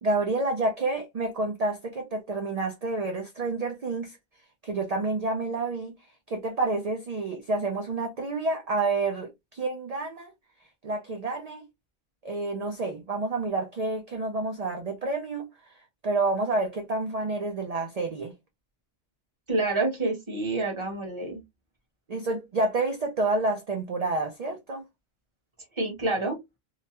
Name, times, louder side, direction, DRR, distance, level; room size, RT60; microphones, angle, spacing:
voice 1, 0.0-4.2 4.6-5.9 6.3-10.3 10.8-11.7 12.2-15.5 16.0-18.3 22.1-24.8, right 3 dB, 55° right, 0.4 m, -29 dB
voice 2, 19.5-21.4 25.8-26.4, right 2 dB, 25° right, 0.8 m, -28 dB
2.9 x 2.2 x 2.8 m
omnidirectional pair, 1.3 m